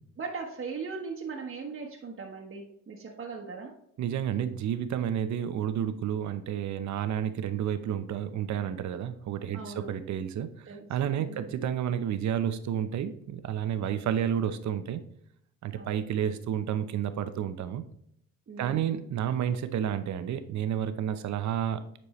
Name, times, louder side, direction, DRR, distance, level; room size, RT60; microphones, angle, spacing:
voice 1, 0.2-3.7 9.5-9.9 10.7-10.9 11.2-11.6 15.7-16.0 18.5-18.9, right 4 dB, 40° right, -2 dB, 1.2 m, -39 dB
voice 2, 4.0-15.0 15.6-17.8 18.6-22.0, right 9 dB, 65° right, 11 dB, 0.8 m, -31 dB
9.8 x 4.4 x 3.2 m, 0.71 s
cardioid pair, 90°, 30 cm